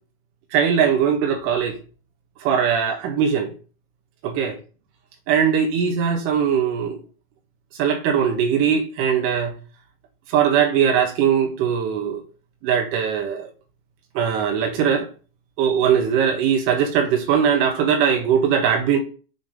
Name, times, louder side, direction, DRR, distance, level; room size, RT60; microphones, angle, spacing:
voice 1, 0.5-1.7 2.4-3.5 4.2-4.5 5.3-7.0 7.8-9.5 10.3-12.2 12.6-13.5 14.1-15.1 15.6-19.0, right 7 dB, 40° right, 1.7 m, -20 dB
6.6 x 5.9 x 5.4 m
hypercardioid pair, 120°, 30 cm